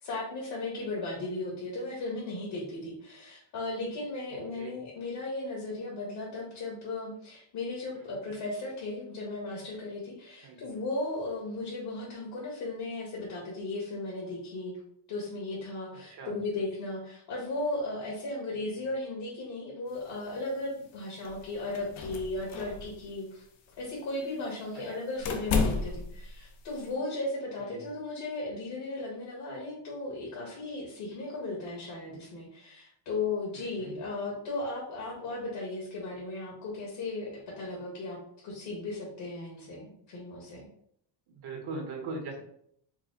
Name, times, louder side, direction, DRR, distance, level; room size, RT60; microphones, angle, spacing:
voice 1, 0.0-14.8 15.1-23.4 23.8-38.2 38.4-40.7, left 2 dB, 60° left, -3 dB, 1.5 m, -36 dB
voice 2, 10.4-10.7 16.1-16.4 24.9-25.1 27.6-27.8 33.5-33.9 41.4-42.4, right 3 dB, 55° right, 3 dB, 1.2 m, -40 dB
sound 1, 19.9-26.9, left 4 dB, 85° left, 0.8 m, -35 dB
4.8 x 2.1 x 3.8 m, 0.68 s
cardioid pair, 115°, 46 cm